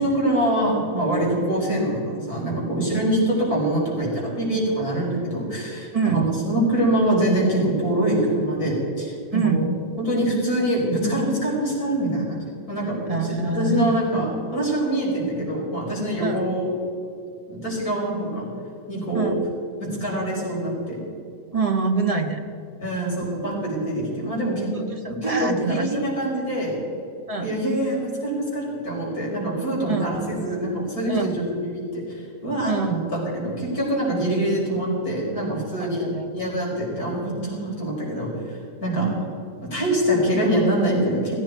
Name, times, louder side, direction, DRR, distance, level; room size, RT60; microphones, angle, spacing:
voice 1, 0.0-9.6 10.0-16.7 17.5-18.5 18.9-19.3 19.8-21.0 22.8-24.7 25.1-26.8 27.4-36.1 36.3-39.1 39.6-41.3, right 1 dB, 80° left, -4 dB, 5.5 m, -24 dB
voice 2, 5.9-6.3 9.3-9.6 13.1-13.9 16.2-16.4 19.1-19.5 21.5-22.4 24.7-25.9 27.3-27.5 29.8-30.1 31.1-31.3 32.6-33.0 35.8-36.3 38.9-39.1, right 4 dB, 25° right, 3 dB, 1.2 m, -25 dB
17.5 x 15.5 x 4.6 m, 2.6 s
omnidirectional pair, 1.6 m